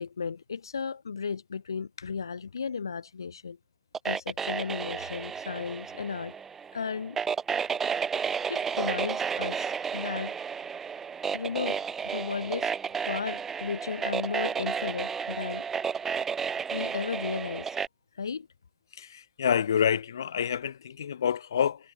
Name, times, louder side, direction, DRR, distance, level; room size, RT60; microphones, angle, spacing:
voice 1, 0.0-3.6 4.1-6.3 6.7-7.2 8.5-10.3 11.3-12.7 13.1-15.6 16.7-17.8 18.1-18.5, left 5 dB, 85° left, 3.9 m, -34 dB
sound 1, 3.9-17.9, right 6 dB, 10° right, 5.3 m, -32 dB
voice 2, 19.0-21.8, left 8 dB, 65° left, 4.6 m, -27 dB
hypercardioid pair, 145°, 2 cm